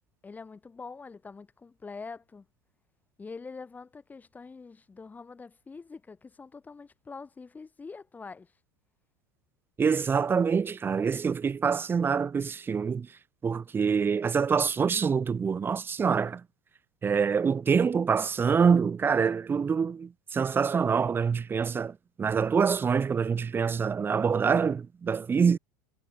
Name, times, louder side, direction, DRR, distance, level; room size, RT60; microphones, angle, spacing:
voice 1, 0.2-2.5 3.2-8.5, left 4 dB, 15° left, 6.9 m, -44 dB
voice 2, 9.8-13.1 13.4-16.4 17.0-25.6, right 6 dB, 20° right, 1.5 m, -25 dB
supercardioid pair, 120°, 10 cm